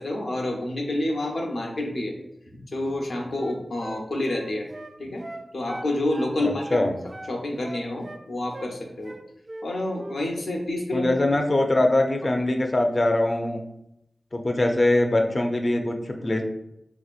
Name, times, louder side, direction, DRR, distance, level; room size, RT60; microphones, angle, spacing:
voice 1, 0.0-2.1 2.7-4.7 5.0-5.2 5.5-6.9 7.3-9.1 9.6-11.1, left 1 dB, 80° left, 0 dB, 0.8 m, -28 dB
Wind instrument woodwind instrument, 2.9-6.3 6.6-8.2 8.5-8.8 9.0-9.7 10.0-10.2, right 2 dB, 40° right, 0.3 m, -40 dB
voice 2, 6.4-6.9 10.9-13.6 14.3-16.4, left 1 dB, 35° left, 3 dB, 0.5 m, -22 dB
4.4 x 2.8 x 2.4 m, 0.81 s
wide cardioid pair, 90°, 0 cm